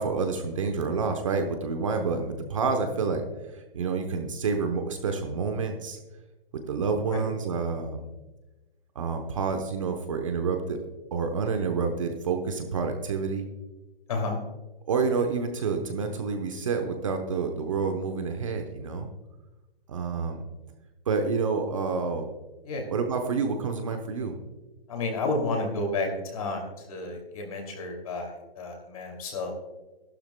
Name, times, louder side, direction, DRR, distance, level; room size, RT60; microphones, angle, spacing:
voice 1, 0.0-3.2 3.5-6.0 6.7-8.1 8.9-10.8 11.1-13.5 14.9-19.1 19.9-20.4 21.1-22.3 22.9-24.4, right 5 dB, 35° right, 5 dB, 0.9 m, -28 dB
voice 2, 14.1-14.4 22.6-22.8 24.9-29.5, left 2 dB, 40° left, 3 dB, 2.6 m, -31 dB
14.0 x 12.0 x 2.2 m, 1.1 s
hypercardioid pair, 175°, 29 cm